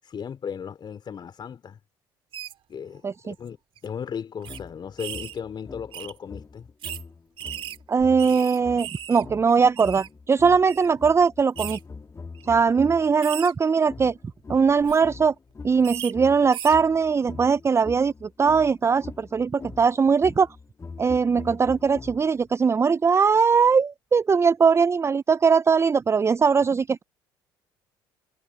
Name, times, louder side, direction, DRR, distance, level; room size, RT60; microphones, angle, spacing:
voice 1, 0.0-1.8 2.7-3.6 3.8-6.7, left 7 dB, 45° left, 3.8 m, -36 dB
sound 1, 2.3-2.5 3.3-3.5 3.8-3.9 4.4-4.6 5.0-5.4 5.9-6.1 6.8-7.0 7.4-9.2 9.5-10.1 10.7-10.9 11.6-11.8 12.3-12.5 13.2-13.5 14.7-15.0 15.8-16.1 16.5-16.8, right 10 dB, 55° right, 2.5 m, -37 dB
voice 2, 3.0-3.3 7.9-11.8 12.5-14.1 14.5-15.3 15.6-20.5 21.0-27.0, right 5 dB, 25° right, 0.5 m, -20 dB
sound 2, 4.5-13.2 13.9-22.5, left 4 dB, 25° left, 2.3 m, -42 dB
hypercardioid pair, 65°, 11 cm